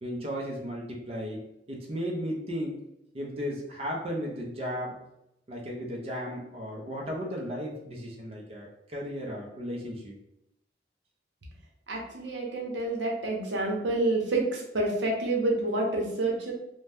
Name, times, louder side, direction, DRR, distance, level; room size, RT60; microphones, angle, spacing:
voice 1, 0.0-1.4 1.7-2.8 3.1-5.0 5.5-10.2, equal, 35° right, -2 dB, 0.5 m, -35 dB
voice 2, 11.9-16.5, right 2 dB, 85° right, -1 dB, 0.7 m, -28 dB
2.7 x 2.1 x 3.3 m, 0.82 s
head